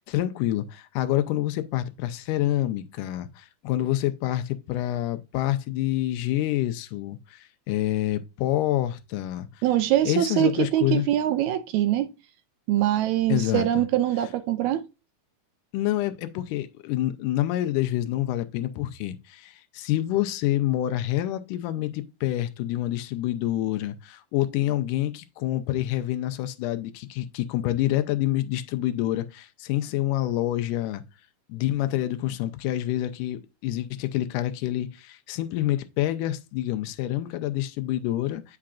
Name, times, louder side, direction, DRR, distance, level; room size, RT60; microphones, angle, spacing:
voice 1, 0.0-9.5 10.0-11.1 13.3-13.8 15.7-31.0 31.5-38.6, left 14 dB, 90° left, 2.2 m, -27 dB
voice 2, 9.6-12.1 12.7-14.8, right 12 dB, 80° right, 1.8 m, -23 dB
8.6 x 5.7 x 2.4 m
omnidirectional pair, 3.6 m